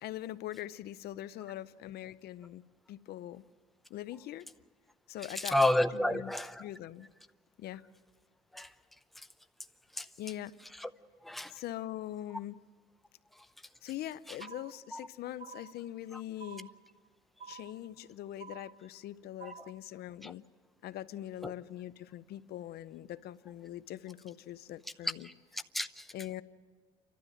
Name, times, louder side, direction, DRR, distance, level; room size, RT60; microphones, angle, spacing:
voice 1, 0.0-2.6 2.9-3.4 3.9-4.5 5.1-5.6 5.9-6.3 6.6-7.1 7.6-7.8 10.2-10.6 11.5-12.6 13.8-16.7 17.5-20.4 20.8-25.3 26.1-26.4, left 13 dB, 70° left, 0.6 m, -42 dB
voice 2, 5.4-6.7 8.5-8.7 10.0-10.1 10.8-10.9 11.2-11.5 14.9-15.0 16.1-16.2 19.4-19.5 20.2-20.3 21.4-21.5 25.2-26.1, left 1 dB, ahead, 0.7 m, -31 dB
sound 1, 14.4-15.1 15.4-16.1 16.4-17.1 17.4-18.1 18.4-19.1 19.4-20.1, right 6 dB, 45° right, 0.9 m, -50 dB
29.5 x 12.5 x 9.0 m
cardioid pair, 110°, 17 cm